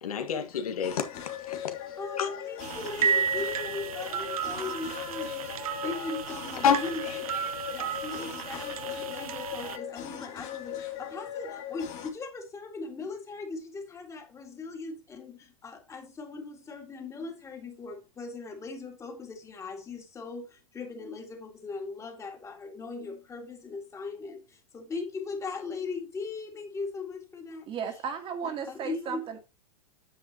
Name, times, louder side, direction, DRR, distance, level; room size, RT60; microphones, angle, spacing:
voice 1, 0.0-2.3 6.6-6.8 7.0-7.6, left 7 dB, 85° left, 1.6 m, -29 dB
sound 1, 0.8-12.1, left 11 dB, 35° left, 2.6 m, -39 dB
voice 2, 2.0-7.4 7.7-27.7 28.4-29.3, left 4 dB, 15° left, 2.1 m, -39 dB
sound 2, 2.6-9.8, right 7 dB, 80° right, 1.0 m, -33 dB
voice 3, 27.7-29.4, right 7 dB, 30° right, 1.8 m, -35 dB
9.1 x 7.9 x 2.9 m
hypercardioid pair, 130°, 18 cm